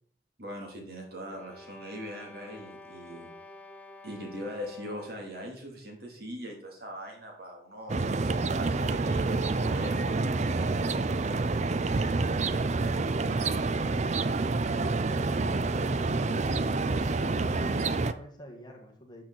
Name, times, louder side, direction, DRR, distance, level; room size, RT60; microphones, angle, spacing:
voice 1, 0.4-3.3 4.0-10.7, equal, 60° right, 0 dB, 3.0 m, -41 dB
sound 1, 1.3-5.4, left 2 dB, 10° left, 0.7 m, -50 dB
sound 2, 7.9-18.1, right 3 dB, 40° right, 0.5 m, -28 dB
voice 2, 11.8-14.5 14.9-17.4 17.7-19.2, equal, 25° left, 2 dB, 1.8 m, -48 dB
12.5 x 6.5 x 4.2 m, 0.63 s
head